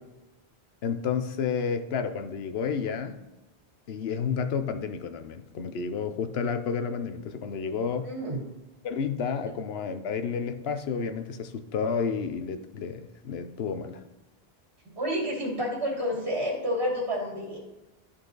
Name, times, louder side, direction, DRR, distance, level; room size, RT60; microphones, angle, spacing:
voice 1, 0.8-3.2 3.9-8.1 8.8-14.0, left 6 dB, 75° left, 9 dB, 1.0 m, -31 dB
voice 2, 8.0-8.4 15.0-17.6, equal, 90° right, -4 dB, 2.6 m, -29 dB
13.0 x 4.4 x 3.9 m, 1.0 s
omnidirectional pair, 1.1 m